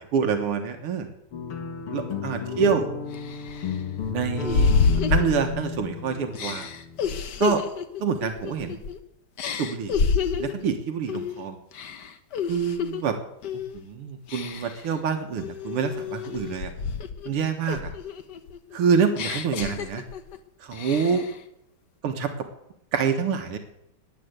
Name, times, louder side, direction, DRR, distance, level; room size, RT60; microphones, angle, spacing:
voice 1, 0.1-1.1 1.9-2.9 4.1-4.7 5.1-6.7 7.4-7.6 8.0-8.8 9.6-9.9 10.4-11.6 12.5-13.2 13.7-16.7 17.3-17.9 18.7-20.0 20.6-21.3 22.0-22.3 22.9-23.6, right 6 dB, 90° right, 6 dB, 2.4 m, -26 dB
sound 1, 1.3-7.2, left 6 dB, 75° left, 2.9 m, -33 dB
flirtatious laugh, 2.5-2.6 3.1-5.9 6.3-9.0 9.4-10.6 11.1-11.4 11.7-13.0 13.4-13.8 14.3-14.9 15.4-17.3 17.7-20.4 20.7-21.4, left 5 dB, 55° left, 1.6 m, -28 dB
20.5 x 8.6 x 8.1 m, 0.80 s
omnidirectional pair, 2.4 m